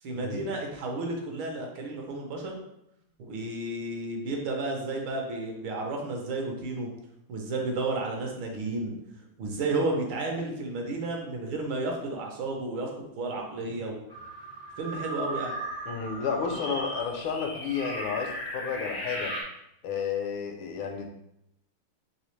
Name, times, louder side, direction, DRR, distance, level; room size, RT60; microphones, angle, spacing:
voice 1, 0.0-2.6 3.2-6.9 7.3-9.0 9.4-12.9 13.1-14.0 14.8-15.6, right 2 dB, 75° right, 1 dB, 1.5 m, -32 dB
sound 1, 14.1-19.4, right 1 dB, 45° left, 0.5 m, -36 dB
voice 2, 15.9-19.3 19.8-21.1, left 6 dB, 80° left, 3 dB, 1.4 m, -32 dB
4.1 x 3.1 x 3.1 m, 0.80 s
omnidirectional pair, 2.4 m